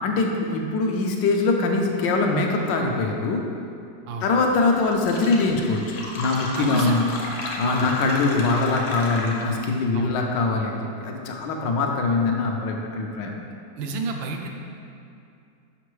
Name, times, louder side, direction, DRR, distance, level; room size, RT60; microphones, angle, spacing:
voice 1, 0.0-3.4 4.2-5.8 6.2-7.1 7.6-13.3, left 3 dB, 75° left, 1 dB, 1.2 m, -23 dB
Fill (with liquid), 4.6-4.7 4.9-9.7, left 2 dB, 55° left, 0.9 m, -33 dB
voice 2, 6.6-6.9 7.6-7.9 9.9-10.1 13.8-14.5, right 4 dB, 85° right, 3 dB, 1.3 m, -30 dB
6.7 x 5.2 x 3.1 m, 2.5 s
omnidirectional pair, 2.1 m